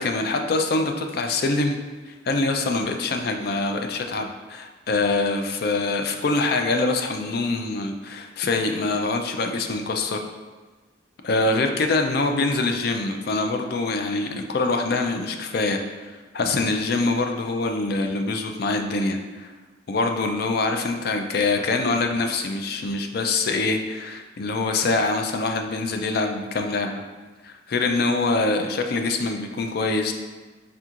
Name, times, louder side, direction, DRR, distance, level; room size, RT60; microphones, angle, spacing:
voice 1, 0.0-1.8 2.1-10.2 11.2-19.5 19.9-27.0 27.4-30.1, left 3 dB, 55° left, 4 dB, 0.4 m, -24 dB
4.3 x 3.6 x 2.4 m, 1.3 s
head